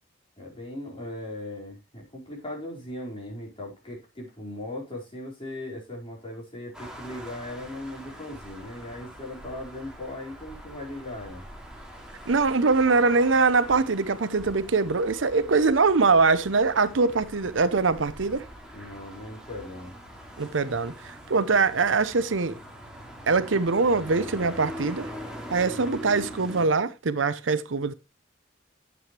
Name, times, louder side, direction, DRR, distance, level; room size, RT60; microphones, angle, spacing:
voice 1, 0.4-11.4 18.7-19.9, left 1 dB, 30° left, 4.9 m, -38 dB
sound 1, 6.7-26.7, equal, 5° right, 2.5 m, -43 dB
voice 2, 12.3-18.4 20.4-22.6 23.3-25.1 25.5-27.9, right 4 dB, 80° right, 0.8 m, -23 dB
11.0 x 7.8 x 3.2 m
head